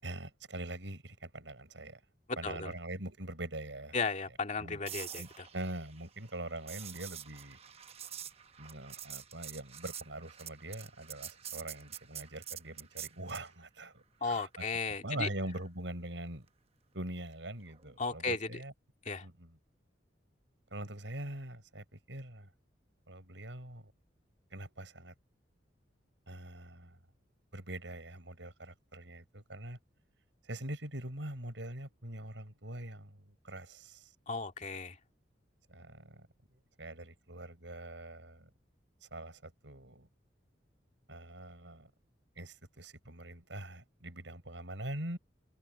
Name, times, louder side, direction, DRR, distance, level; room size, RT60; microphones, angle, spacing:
voice 1, 0.0-2.0 2.4-4.0 4.6-4.8 5.1-7.6 8.6-14.6 15.0-16.5 16.9-18.7 19.2-19.6 20.7-22.5 23.1-23.9 24.5-25.1 26.3-27.0 27.5-29.8 30.4-34.1 35.7-36.3 36.5-38.5 39.0-40.1 41.1-41.9 42.3-45.2, right 1 dB, 75° right, 6.7 m, -43 dB
voice 2, 3.9-5.5 14.2-15.3 18.0-18.6 19.1-19.3 34.3-35.0, left 4 dB, 40° left, 2.1 m, -35 dB
sound 1, 4.9-13.5 17.7-17.9, right 9 dB, 35° right, 1.0 m, -46 dB
head